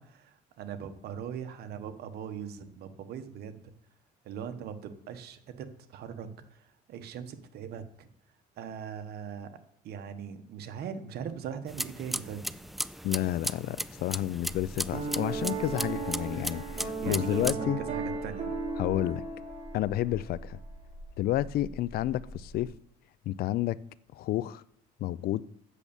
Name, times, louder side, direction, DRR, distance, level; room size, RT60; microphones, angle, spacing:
voice 1, 0.0-3.7 4.2-8.1 8.6-9.5 9.8-12.5 17.0-18.5, right 8 dB, 70° right, 1.2 m, -40 dB
sound 1, 11.7-17.5, equal, ahead, 0.3 m, -37 dB
voice 2, 13.0-17.8 18.8-19.2 19.7-20.6 21.2-22.7 23.3-23.8 24.1-24.6 25.0-25.4, left 14 dB, 65° left, 0.4 m, -30 dB
sound 2, 14.4-22.7, equal, 30° left, 2.9 m, -46 dB
Piano, 14.9-20.2, right 4 dB, 40° right, 5.1 m, -35 dB
8.3 x 6.9 x 7.0 m
cardioid pair, 110°, 17 cm